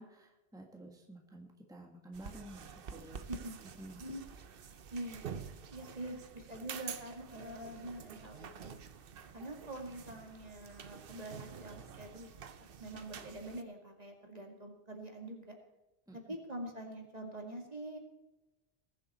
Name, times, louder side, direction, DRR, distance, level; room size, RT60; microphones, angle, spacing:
voice 1, 0.0-3.2 3.8-4.0 16.1-16.2, right 1 dB, 5° right, 1 dB, 1.6 m, -51 dB
sound 1, 2.1-13.6, right 7 dB, 60° right, 1.0 m, -48 dB
voice 2, 4.9-5.3 5.7-8.7 9.3-12.3 12.8-15.6 16.1-18.0, right 1 dB, 40° right, 1 dB, 2.3 m, -45 dB
20.5 x 7.6 x 4.3 m, 1.1 s
omnidirectional pair, 1.1 m